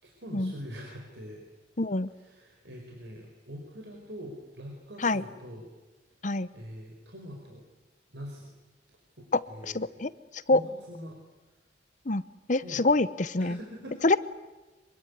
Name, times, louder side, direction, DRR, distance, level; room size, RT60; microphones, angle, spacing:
voice 1, 0.0-1.4 2.1-5.7 6.5-7.6 8.1-8.5 9.2-10.0 10.5-11.2 12.6-13.0 13.4-14.2, equal, 80° right, 1 dB, 5.0 m, -44 dB
voice 2, 1.8-2.1 5.0-5.2 6.2-6.5 9.3-9.4 9.7-10.1 10.5-10.6 12.1-12.2 12.5-13.6 14.0-14.2, left 2 dB, 45° left, 15 dB, 0.9 m, -25 dB
25.0 x 23.5 x 9.7 m, 1.2 s
head